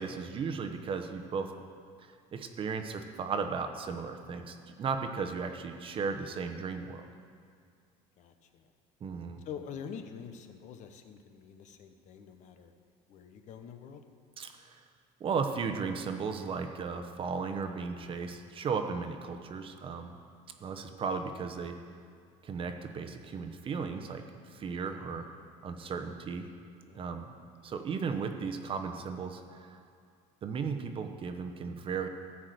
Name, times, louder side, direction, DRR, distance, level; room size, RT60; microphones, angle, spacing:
voice 1, 0.0-1.5 2.3-7.0 9.0-9.4 14.4-14.8 15.2-20.1 20.6-21.8 22.4-25.3 25.6-26.4 26.9-27.3 27.6-29.8 30.4-32.1, right 5 dB, 35° right, 6 dB, 0.9 m, -35 dB
voice 2, 8.2-8.7 9.4-12.7 13.1-14.0 26.8-27.2, left 7 dB, 55° left, 7 dB, 0.9 m, -46 dB
14.0 x 4.9 x 7.9 m, 2.2 s
cardioid pair, 125°, 15 cm